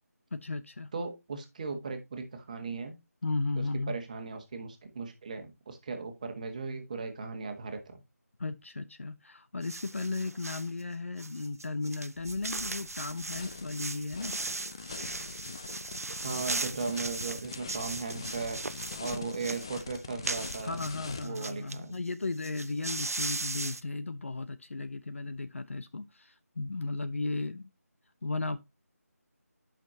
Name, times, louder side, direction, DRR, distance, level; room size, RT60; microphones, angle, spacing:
voice 1, 0.3-0.9 3.2-4.0 8.4-14.3 20.6-27.7 28.2-28.6, left 3 dB, 50° left, 0.7 m, -35 dB
voice 2, 0.9-3.0 3.9-8.0 16.2-18.6 19.0-20.8 21.2-22.0, right 4 dB, 25° right, 1.5 m, -37 dB
sound 1, 9.6-10.7 11.2-21.8 22.1-22.2 22.4-23.8, right 3 dB, 65° right, 0.7 m, -38 dB
sound 2, 12.1-21.2, left 4 dB, 15° left, 0.4 m, -43 dB
11.0 x 5.9 x 2.7 m
figure-of-eight pair, 165°, 9 cm